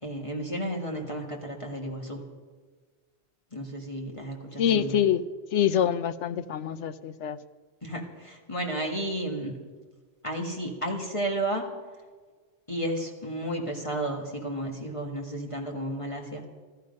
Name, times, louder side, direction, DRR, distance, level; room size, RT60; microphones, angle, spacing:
voice 1, 0.0-2.2 3.5-5.0 7.8-9.6 10.2-11.7 12.7-16.4, right 1 dB, 25° left, 0 dB, 1.7 m, -32 dB
voice 2, 4.6-5.2 5.5-7.4, left 9 dB, 80° left, 13 dB, 1.0 m, -25 dB
14.5 x 14.0 x 5.3 m, 1.5 s
omnidirectional pair, 1.2 m